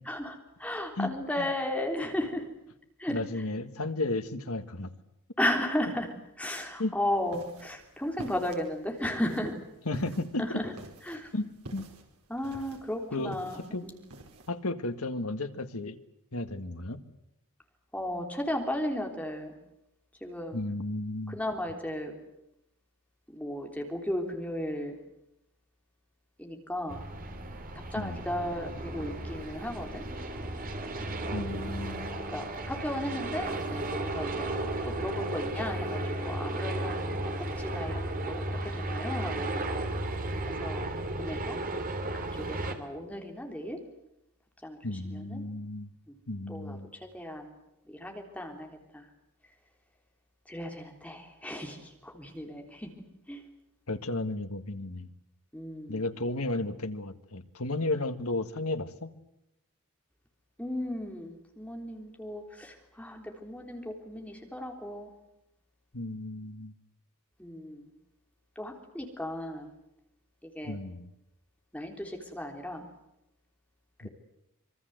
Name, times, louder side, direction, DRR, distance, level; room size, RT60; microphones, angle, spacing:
voice 1, 0.0-2.5 3.0-3.2 5.4-6.1 6.4-9.6 10.4-10.7 11.0-11.3 12.3-13.9 17.9-19.6 20.2-20.6 21.3-22.1 23.3-25.0 26.4-27.1 27.9-30.0 32.3-34.5 34.8-39.6 40.6-40.9 41.1-41.6 42.1-43.8 44.6-44.8 45.1-45.4 46.1-46.2 46.5-47.5 47.9-49.1 50.4-52.9 53.3-53.4 55.5-56.0 60.6-65.1 67.4-67.9 68.5-69.7 70.4-70.8 71.7-72.9, left 1 dB, 5° left, 2 dB, 3.5 m, -35 dB
voice 2, 3.1-4.9 6.8-6.9 9.9-10.6 11.3-11.9 13.1-13.9 14.5-16.0 16.3-17.0 20.5-21.4 27.9-28.2 31.3-32.2 44.8-45.9 46.3-46.9 53.9-55.1 55.9-59.1 65.9-66.7 70.6-71.1 74.0-74.1, left 2 dB, 75° left, 8 dB, 1.9 m, -33 dB
sound 1, 7.1-14.5, right 1 dB, 80° right, 4.5 m, -48 dB
sound 2, 26.9-42.8, right 1 dB, 40° right, 3.1 m, -34 dB
26.0 x 23.5 x 8.0 m, 0.84 s
head